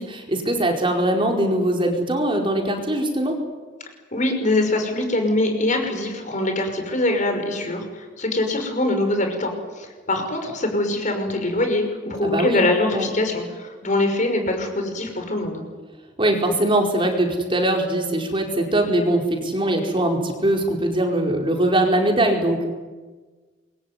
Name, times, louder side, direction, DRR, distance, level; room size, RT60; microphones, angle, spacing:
voice 1, 0.0-3.3 12.2-12.7 12.9-13.1 16.2-22.7, right 1 dB, 30° right, 2 dB, 4.7 m, -21 dB
voice 2, 4.1-15.6, left 2 dB, 45° left, 5 dB, 5.8 m, -23 dB
26.0 x 23.0 x 9.7 m, 1.3 s
head